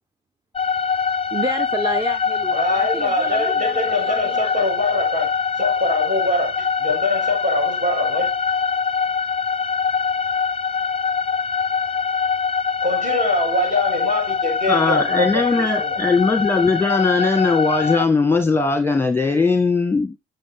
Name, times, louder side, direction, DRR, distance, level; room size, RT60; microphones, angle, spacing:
sound 1, 0.6-18.1, left 6 dB, 25° left, 0.8 m, -23 dB
voice 1, 1.3-4.6, right 1 dB, 15° right, 0.9 m, -30 dB
voice 2, 2.5-8.3 12.8-16.0, left 1 dB, 40° right, 6.6 m, -24 dB
voice 3, 14.7-20.2, left 3 dB, 10° left, 1.4 m, -19 dB
7.6 x 7.1 x 3.6 m
cardioid pair, 90°, 20 cm